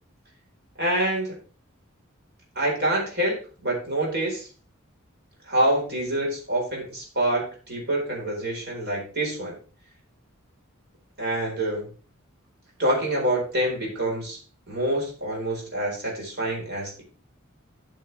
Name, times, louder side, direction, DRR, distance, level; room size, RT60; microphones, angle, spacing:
voice 1, 0.8-1.4 2.6-4.5 5.5-9.6 11.2-11.9 12.8-14.4 14.7-17.0, right 1 dB, 50° right, -2 dB, 4.4 m, -26 dB
11.5 x 6.6 x 3.4 m, 0.37 s
head